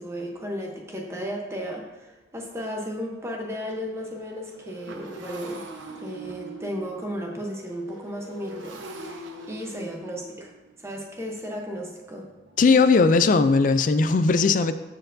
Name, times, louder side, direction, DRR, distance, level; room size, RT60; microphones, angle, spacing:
voice 1, 0.0-10.5 10.8-12.3, equal, 15° right, 1 dB, 0.8 m, -34 dB
Motorcycle, 1.1-1.2 1.6-1.8 2.1-13.7, right 2 dB, 75° right, 0.9 m, -44 dB
voice 2, 12.6-14.7, left 4 dB, 40° left, 11 dB, 0.3 m, -18 dB
13.0 x 4.4 x 2.6 m, 1.2 s
head